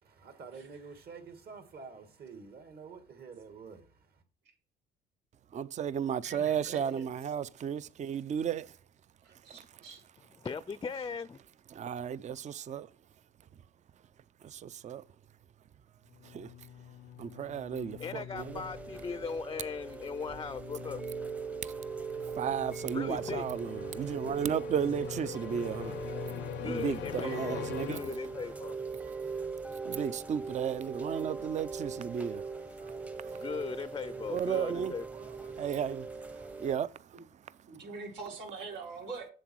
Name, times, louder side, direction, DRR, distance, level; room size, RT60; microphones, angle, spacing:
voice 1, 0.0-4.1, right 5 dB, 55° right, 2.2 m, -48 dB
voice 2, 5.5-8.8 9.3-9.8 11.7-12.9 14.4-15.0 16.2-16.7 17.2-18.6 21.6-21.7 22.2-28.0 28.9-29.3 29.7-33.5 34.3-37.9, right 8 dB, 40° right, 0.5 m, -35 dB
voice 3, 6.2-7.0 9.2-10.0 37.7-39.3, right 4 dB, 90° right, 4.0 m, -44 dB
voice 4, 10.4-11.4 18.0-21.0 22.9-23.5 26.6-28.8 33.4-35.0, left 5 dB, 20° left, 0.5 m, -38 dB
sound 1, 16.1-28.7, left 11 dB, 70° left, 0.5 m, -45 dB
Chime / Rain, 18.4-36.8, right 5 dB, 5° right, 0.8 m, -41 dB
7.7 x 7.3 x 4.6 m
cardioid pair, 100°, 19 cm